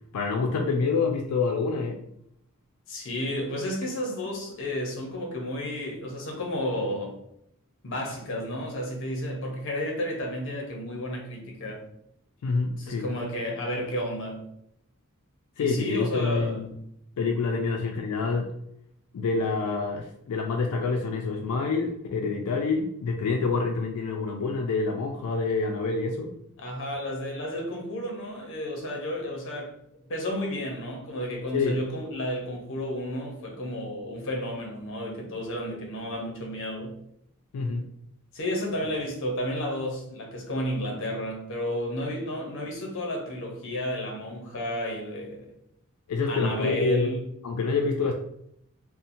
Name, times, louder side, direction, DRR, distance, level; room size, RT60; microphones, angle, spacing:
voice 1, 0.1-2.0 12.4-13.1 15.6-16.8 17.2-18.5 19.1-26.3 31.5-31.8 37.5-37.9 46.1-47.1 47.4-48.1, left 4 dB, 85° left, 0.3 m, -27 dB
voice 2, 2.9-7.2 7.8-11.8 12.8-14.5 15.6-16.6 26.6-29.7 30.1-37.0 38.3-45.5 46.3-47.2, equal, 60° left, 0.7 m, -32 dB
2.7 x 2.1 x 2.5 m
head